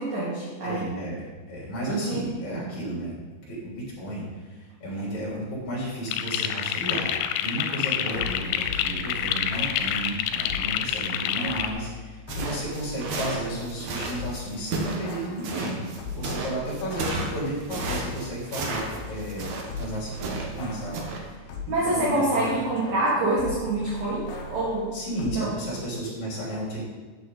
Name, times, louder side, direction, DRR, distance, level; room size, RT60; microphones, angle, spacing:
voice 1, 0.0-0.8 1.9-2.6 21.7-24.9 25.3-25.5, right 2 dB, 50° right, -6 dB, 2.8 m, -26 dB
voice 2, 0.6-7.1 7.4-15.8 16.1-19.5 19.7-22.7 24.9-26.8, right 1 dB, 40° left, -5 dB, 4.5 m, -33 dB
sound 1, 6.1-11.7, left 10 dB, 85° left, 3.1 m, -27 dB
sound 2, 8.0-10.8 11.4-14.5 14.8-21.9 22.2-25.4, left 2 dB, 70° left, 2.5 m, -39 dB
sound 3, 12.3-20.6 20.9-21.2, right 3 dB, 70° right, 1.8 m, -33 dB
12.5 x 8.8 x 4.0 m, 1.4 s
omnidirectional pair, 5.2 m